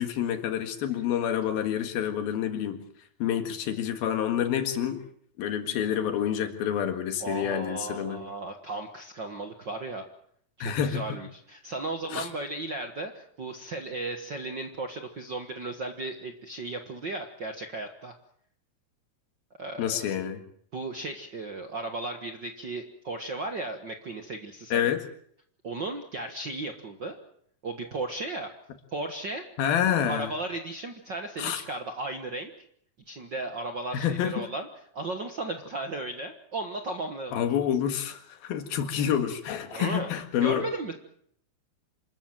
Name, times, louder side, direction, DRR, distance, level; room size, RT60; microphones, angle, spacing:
voice 1, 0.0-2.8 3.2-5.0 5.4-8.2 10.6-11.0 12.1-12.3 19.8-20.4 24.7-25.0 29.6-30.3 31.4-31.6 33.9-34.5 37.3-40.6, left 9 dB, 85° left, 8 dB, 3.7 m, -28 dB
voice 2, 7.2-10.1 10.6-18.1 19.6-20.0 20.7-24.9 25.6-27.1 27.6-28.5 28.9-29.5 30.1-32.5 33.1-34.7 34.9-37.5 39.0-39.1 39.7-40.1 40.4-40.9, right 2 dB, 50° right, 6 dB, 1.3 m, -35 dB
26.5 x 14.0 x 9.0 m, 0.67 s
omnidirectional pair, 4.2 m